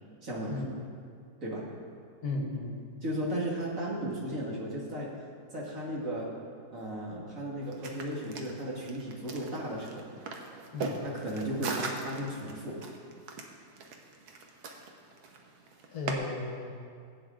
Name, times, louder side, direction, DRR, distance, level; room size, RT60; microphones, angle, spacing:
voice 1, 0.2-0.6 1.4-1.7 3.0-5.1 5.5-6.3 6.7-10.1 11.0-12.8, right 1 dB, 50° right, -5 dB, 2.4 m, -35 dB
voice 2, 2.2-2.9 10.7-11.0 15.9-16.7, left 2 dB, 65° left, 1 dB, 1.7 m, -35 dB
sound 1, 7.6-16.1, right 4 dB, 70° right, 1.4 m, -40 dB
15.0 x 8.5 x 3.8 m, 2.3 s
omnidirectional pair, 1.8 m